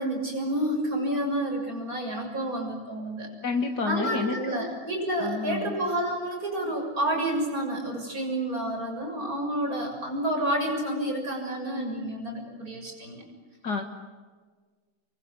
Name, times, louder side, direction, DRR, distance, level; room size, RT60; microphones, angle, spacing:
voice 1, 0.0-3.3 3.8-13.2, right 1 dB, 45° right, 2 dB, 7.4 m, -29 dB
voice 2, 3.4-4.8 5.2-5.8 13.6-13.9, left 4 dB, 60° left, 5 dB, 2.1 m, -29 dB
29.5 x 23.0 x 8.3 m, 1.5 s
omnidirectional pair, 2.1 m